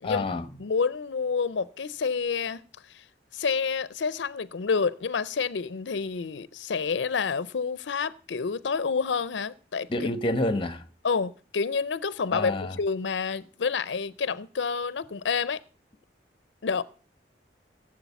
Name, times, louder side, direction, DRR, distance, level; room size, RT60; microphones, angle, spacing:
voice 1, 0.0-0.5 9.9-10.8 12.3-12.8, left 2 dB, 30° left, 1.0 m, -28 dB
voice 2, 0.6-2.6 2.9-3.0 3.3-9.9 11.0-15.6 16.6-16.8, left 5 dB, 85° left, 0.5 m, -28 dB
16.0 x 7.6 x 7.0 m
head